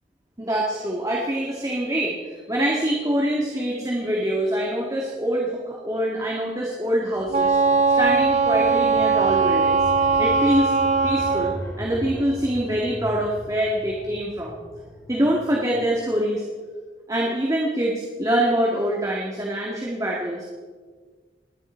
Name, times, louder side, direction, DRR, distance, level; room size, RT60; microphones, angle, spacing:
voice 1, 0.4-7.6 8.0-9.9 10.2-10.7 11.0-14.6 15.1-16.4 17.1-20.4, right 1 dB, 20° right, -3 dB, 2.1 m, -24 dB
sound 1, 7.1-15.9, equal, 15° left, 2.7 m, -38 dB
Wind instrument woodwind instrument, 7.3-11.6, right 4 dB, 40° right, 0.7 m, -20 dB
28.5 x 11.0 x 4.5 m, 1.5 s
head